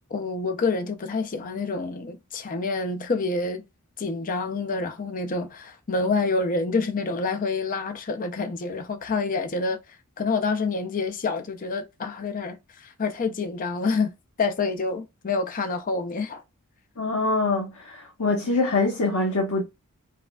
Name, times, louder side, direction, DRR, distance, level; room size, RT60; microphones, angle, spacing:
voice 1, 0.1-3.6 4.0-9.8 10.2-14.1 14.4-16.4, left 3 dB, 40° left, 0.5 m, -27 dB
voice 2, 17.0-19.6, left 3 dB, 80° left, 1.0 m, -24 dB
4.6 x 2.2 x 2.2 m
head